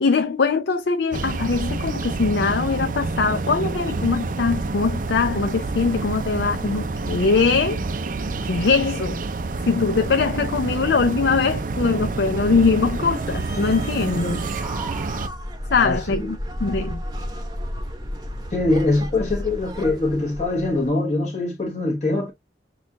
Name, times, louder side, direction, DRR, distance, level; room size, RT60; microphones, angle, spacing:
voice 1, 0.0-7.8 8.5-9.2 9.7-14.4 15.7-16.4 16.6-17.0, left 4 dB, 65° left, 0.5 m, -22 dB
sound 1, 1.1-15.3, right 3 dB, 50° right, 0.5 m, -28 dB
sound 2, 12.7-20.9, equal, 20° right, 0.8 m, -33 dB
voice 2, 15.7-16.3 18.5-22.3, left 2 dB, 40° left, 1.2 m, -23 dB
6.2 x 2.4 x 2.6 m
head